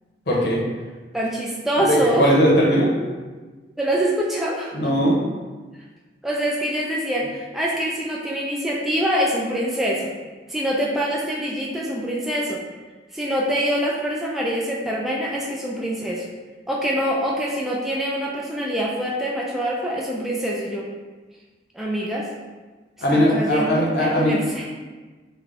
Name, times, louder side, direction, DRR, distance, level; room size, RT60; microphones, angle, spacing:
voice 1, 0.3-0.6 1.9-2.9 4.7-5.2 23.0-24.3, equal, 65° left, -4 dB, 0.9 m, -19 dB
voice 2, 1.1-2.4 3.8-4.7 6.2-10.1 10.5-12.6 13.1-16.3 16.7-20.9 21.7-22.3 23.1-24.7, equal, ahead, -4 dB, 0.3 m, -25 dB
3.2 x 2.2 x 3.7 m, 1.3 s
head